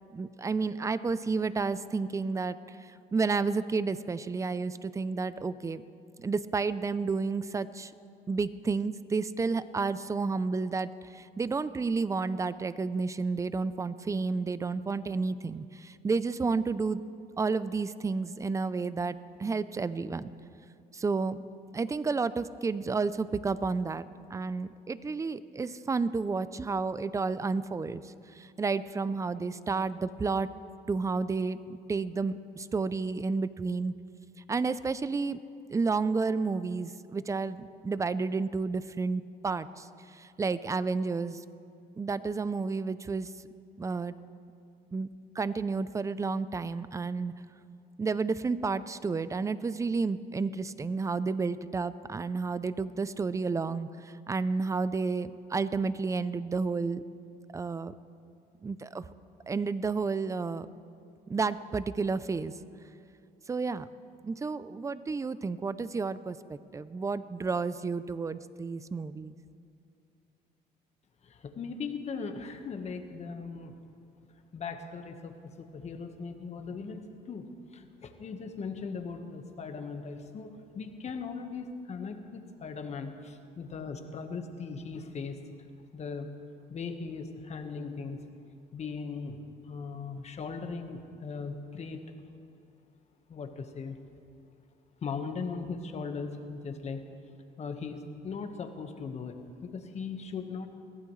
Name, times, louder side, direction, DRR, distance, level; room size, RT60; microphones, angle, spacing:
voice 1, 0.1-2.8 3.1-5.8 6.2-7.9 8.3-17.0 17.4-20.3 20.9-21.4 21.7-24.0 24.3-30.5 30.9-33.9 34.5-35.4 35.7-39.9 40.1-41.4 42.0-43.3 43.8-44.1 44.9-45.1 45.4-47.3 48.0-57.0 57.5-57.9 58.6-59.0 59.5-60.7 61.3-62.5 63.5-63.9 64.2-69.3, right 4 dB, 20° right, 15 dB, 0.5 m, -31 dB
voice 2, 71.2-73.7 74.5-85.4 85.9-86.3 86.7-88.2 88.7-92.0 93.3-94.0 95.0-97.0 97.6-100.7, left 5 dB, 40° left, 6 dB, 1.3 m, -39 dB
21.5 x 15.0 x 3.2 m, 2.6 s
cardioid pair, 110°, 17 cm